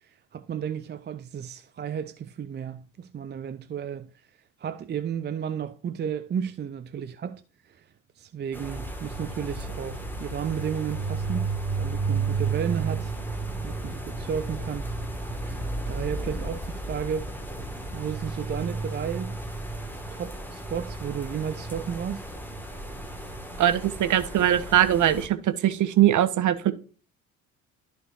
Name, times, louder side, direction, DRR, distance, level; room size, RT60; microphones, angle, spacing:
voice 1, 0.3-4.1 4.6-7.4 7.7-7.8 8.2-11.5 11.8-13.1 13.6-14.9 15.4-17.3 17.9-19.3 20.1-22.2, right 8 dB, 25° right, 0.6 m, -33 dB
sound 1, 8.5-25.3, right 3 dB, 5° left, 2.0 m, -33 dB
voice 2, 23.6-26.7, right 11 dB, 45° right, 1.2 m, -21 dB
14.0 x 5.1 x 2.7 m
figure-of-eight pair, 55°, 43 cm